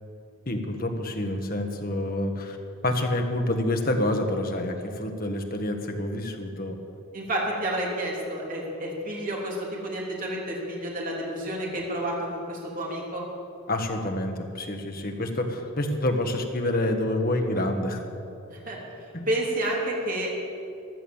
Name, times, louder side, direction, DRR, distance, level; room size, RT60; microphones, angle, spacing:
voice 1, 0.5-2.6 2.8-6.8 13.7-18.0 19.1-19.3, left 1 dB, 40° left, 4 dB, 1.5 m, -27 dB
voice 2, 7.1-13.2 18.5-18.8 19.3-20.3, right 1 dB, 40° right, -3 dB, 3.2 m, -30 dB
15.5 x 11.0 x 7.2 m, 2.7 s
head